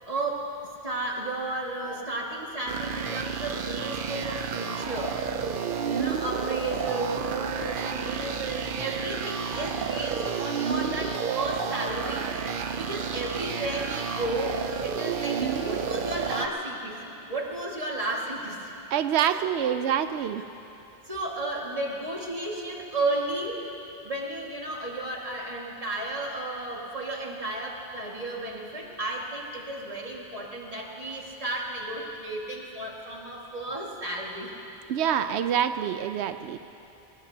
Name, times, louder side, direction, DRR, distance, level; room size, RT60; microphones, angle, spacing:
voice 1, 0.1-0.5 0.8-5.2 5.7-18.7 19.2-19.8 21.1-34.5, right 2 dB, 35° right, -2 dB, 2.0 m, -33 dB
sound 1, 2.7-16.5, right 6 dB, 55° right, 0.8 m, -31 dB
voice 2, 18.9-20.4 34.9-36.6, right 9 dB, 90° right, 10 dB, 0.9 m, -26 dB
25.5 x 20.0 x 2.8 m, 2.9 s
omnidirectional pair, 1.1 m